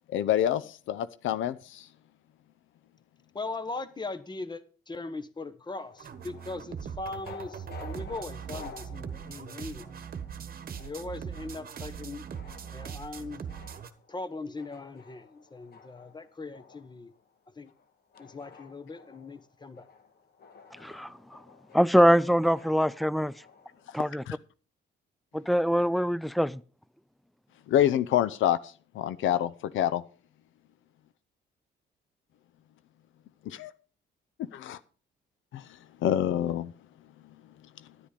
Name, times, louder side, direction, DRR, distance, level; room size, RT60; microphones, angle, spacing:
voice 1, 0.1-1.9 24.3-24.4 27.7-30.0 33.5-33.7 34.5-34.8 35.5-35.7 36.0-36.7, left 11 dB, 80° left, 0.6 m, -27 dB
voice 2, 3.3-10.1 10.8-12.2 12.7-13.4 14.1-17.1 17.5-17.7 18.2-19.9, left 3 dB, 20° left, 1.2 m, -40 dB
sound 1, 5.8-24.2, left 5 dB, 55° left, 2.0 m, -53 dB
sound 2, 6.0-13.9, right 7 dB, 50° right, 1.2 m, -40 dB
voice 3, 21.7-23.3 23.9-24.2 25.3-26.6, equal, ahead, 0.5 m, -23 dB
10.0 x 10.0 x 5.1 m
cardioid pair, 90°, 20 cm